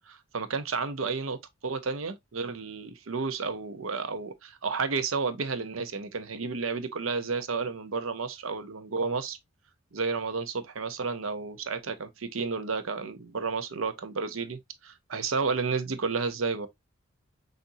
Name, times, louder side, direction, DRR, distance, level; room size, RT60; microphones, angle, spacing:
voice 1, 0.0-1.4 1.6-9.4 9.9-16.7, right 4 dB, 85° right, 0.8 m, -31 dB
6.4 x 2.6 x 2.7 m
head